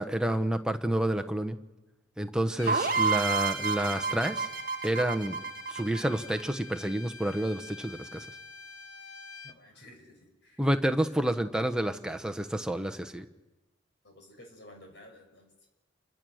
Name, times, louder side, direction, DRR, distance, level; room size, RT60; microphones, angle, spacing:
voice 1, 0.0-1.6 2.2-4.5 4.8-5.4 5.7-8.3 10.6-13.2, right 1 dB, 5° right, 7 dB, 0.9 m, -29 dB
Bowed string instrument, 2.6-9.5, left 4 dB, 80° left, 1.3 m, -45 dB
sound 1, 2.7-6.4, right 5 dB, 45° right, 0.8 m, -30 dB
voice 2, 9.4-10.7 14.0-15.7, left 1 dB, 55° left, 3 dB, 6.1 m, -53 dB
28.0 x 24.5 x 6.4 m, 1.1 s
head